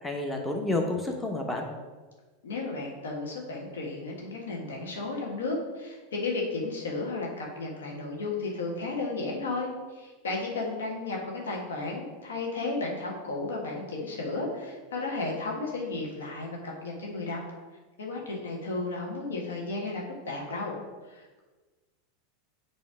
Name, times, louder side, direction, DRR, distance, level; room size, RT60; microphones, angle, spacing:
voice 1, 0.0-1.7, left 2 dB, 10° left, 1 dB, 0.9 m, -30 dB
voice 2, 2.4-17.4 18.0-20.7 21.1-21.4, left 3 dB, 80° left, -1 dB, 1.4 m, -33 dB
7.4 x 3.1 x 4.8 m, 1.3 s
hypercardioid pair, 95°, 0 cm